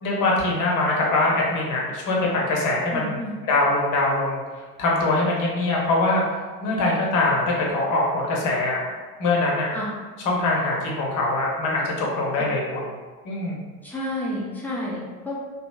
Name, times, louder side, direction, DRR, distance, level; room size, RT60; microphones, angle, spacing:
voice 1, 0.0-3.2 3.4-4.4 4.8-6.2 6.6-8.9 9.2-9.7 10.2-12.9 13.2-13.6, left 2 dB, 40° left, -3 dB, 0.8 m, -23 dB
voice 2, 2.9-3.3 9.7-9.9 12.4-12.5 13.8-15.4, left 1 dB, 5° left, -6 dB, 0.4 m, -30 dB
2.8 x 2.7 x 2.2 m, 1.4 s
figure-of-eight pair, 75°, 50 cm